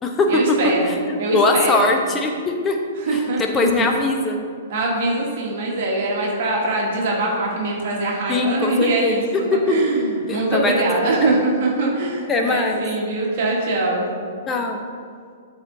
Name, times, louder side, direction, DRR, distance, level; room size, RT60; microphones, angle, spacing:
voice 1, 0.3-0.9 1.2-1.8 3.0-3.7 4.7-14.1, right 2 dB, 50° right, -3 dB, 1.9 m, -22 dB
voice 2, 0.9-2.8 3.1-4.4 8.3-9.2 9.5-9.6 10.3-10.7 11.2-11.3 12.3-12.8 14.5-14.8, left 3 dB, 20° left, 2 dB, 1.1 m, -21 dB
12.5 x 4.4 x 4.0 m, 2.1 s
figure-of-eight pair, 110°, 0 cm